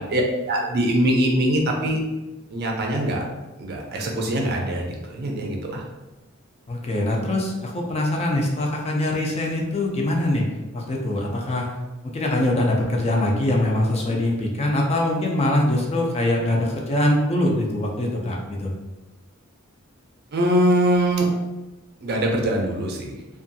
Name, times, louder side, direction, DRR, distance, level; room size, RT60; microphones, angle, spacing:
voice 1, 0.0-2.0 2.5-3.2 3.6-5.8 20.3-21.3 22.0-23.1, right 1 dB, 50° right, 0 dB, 0.5 m, -22 dB
voice 2, 6.7-10.5 10.7-11.7 12.1-18.7, left 1 dB, 30° left, 0 dB, 0.3 m, -23 dB
2.6 x 2.3 x 2.6 m, 1.1 s
head